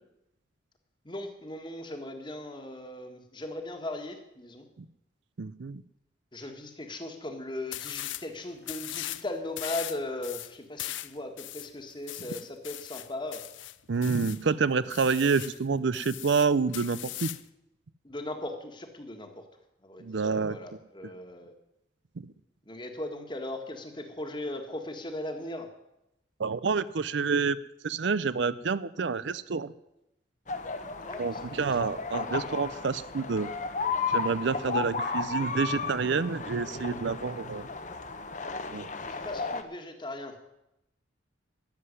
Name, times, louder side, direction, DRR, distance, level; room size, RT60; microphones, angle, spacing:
voice 1, 1.1-4.7 6.3-13.4 18.0-19.5 19.8-21.5 22.7-25.7 31.1-32.0 39.0-40.4, left 1 dB, 25° left, 5 dB, 1.6 m, -38 dB
voice 2, 5.4-5.8 13.9-17.3 20.0-20.6 22.2-22.3 26.4-27.6 27.8-29.7 31.2-33.5 34.1-37.7 38.7-38.9, right 5 dB, 65° right, 16 dB, 0.5 m, -28 dB
sound 1, 7.7-8.3 8.6-9.2 9.6-14.4 14.9-15.6 15.9-17.5, left 15 dB, 70° left, 0.6 m, -39 dB
sound 2, 30.5-39.6, left 4 dB, 40° left, 1.0 m, -34 dB
13.5 x 7.7 x 9.9 m, 0.87 s
head